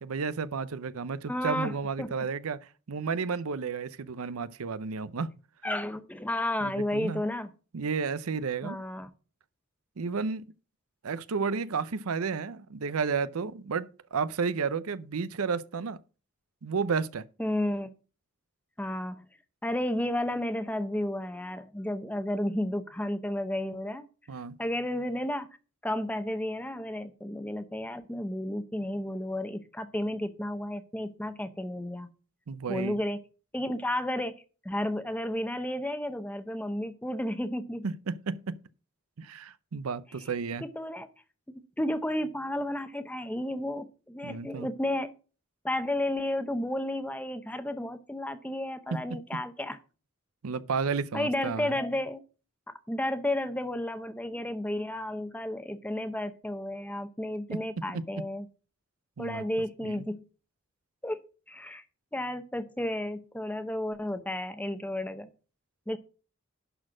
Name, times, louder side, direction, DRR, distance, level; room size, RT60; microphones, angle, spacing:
voice 1, 0.0-5.3 6.6-7.2 7.7-8.8 10.0-10.4 11.0-16.0 16.6-17.2 24.3-24.6 32.5-33.0 37.8-38.6 39.2-40.6 44.2-44.7 48.9-49.2 50.4-51.8 57.5-57.6 57.9-58.0 59.2-59.4 59.8-60.0, right 5 dB, 80° right, 0.6 m, -32 dB
voice 2, 1.3-2.1 5.6-7.5 8.6-9.1 17.4-17.9 18.8-19.2 19.6-24.1 24.6-25.5 25.8-32.1 32.7-33.2 33.5-34.3 34.6-37.9 40.6-41.1 41.5-45.1 45.6-49.8 51.1-52.2 52.9-58.5 59.2-60.2 61.0-61.2 61.5-61.8 62.1-65.3 65.9-66.0, left 1 dB, 5° left, 0.7 m, -32 dB
11.0 x 4.3 x 6.1 m
head